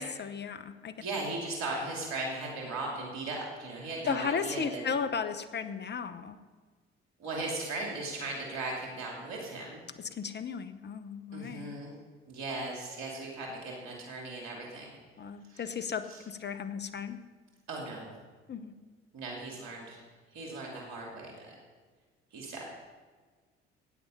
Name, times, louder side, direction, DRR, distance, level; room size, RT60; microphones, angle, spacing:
voice 1, 0.0-0.9 4.0-6.4 10.0-11.8 15.2-17.2 18.5-18.7, left 6 dB, 35° left, 9 dB, 1.0 m, -35 dB
voice 2, 1.0-4.8 7.2-9.8 11.3-11.9 12.3-14.9 15.5-15.7 16.1-16.2 17.7-18.1 19.1-20.0 20.3-21.5 22.3-22.6, right 2 dB, 65° right, -1 dB, 2.8 m, -38 dB
14.5 x 8.7 x 5.5 m, 1.5 s
hypercardioid pair, 50°, 31 cm